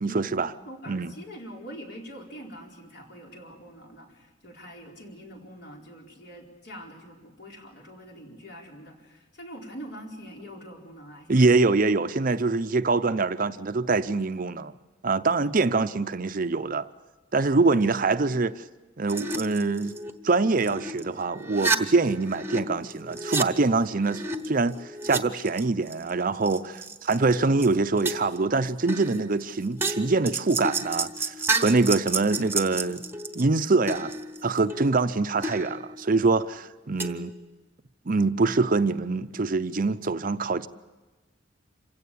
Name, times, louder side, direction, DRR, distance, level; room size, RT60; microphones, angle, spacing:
voice 1, 0.0-0.5 0.9-1.1 11.3-14.7 15.0-16.9 17.3-18.6 19.0-20.0 20.2-33.0 33.3-34.1 34.4-37.3 38.1-40.7, right 3 dB, 45° right, 0.6 m, -24 dB
voice 2, 0.6-11.4, equal, 60° left, 4.4 m, -44 dB
sound 1, 19.1-21.0 21.3-22.6 22.9-25.2 25.5-26.1 26.5-27.3 27.6-27.7 28.0-28.5 28.9-33.4 33.9-35.0 35.4-36.3 37.0-37.3, right 3 dB, 10° right, 1.1 m, -31 dB
27.0 x 16.5 x 8.5 m
head